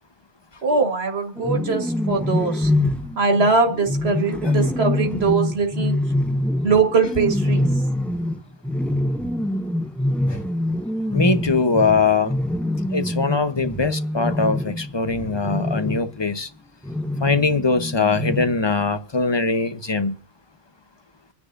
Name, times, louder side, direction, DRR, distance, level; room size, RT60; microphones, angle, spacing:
voice 1, 0.6-2.7 3.2-6.0 6.6-7.7, right 4 dB, 90° right, 2.0 m, -21 dB
sound 1, 1.4-16.1 16.8-18.7, left 1 dB, ahead, 0.4 m, -25 dB
voice 2, 11.1-12.3 12.9-16.5 17.2-20.2, left 4 dB, 25° left, 1.0 m, -21 dB
26.0 x 10.0 x 2.6 m
omnidirectional pair, 1.0 m